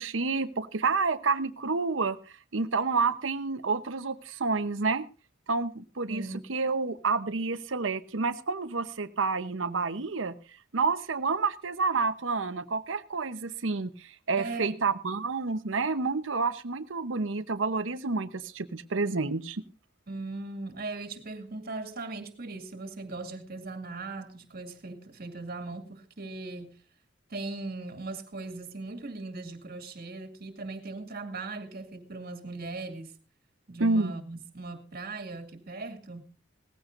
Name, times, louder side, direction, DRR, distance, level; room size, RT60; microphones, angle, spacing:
voice 1, 0.0-5.1 5.5-10.4 10.7-19.6 33.8-34.1, right 4 dB, 90° right, 0.9 m, -29 dB
voice 2, 6.1-6.5 14.4-14.9 20.1-26.7 27.3-33.1 33.7-36.2, right 3 dB, 50° right, 2.3 m, -39 dB
18.5 x 15.0 x 2.5 m
head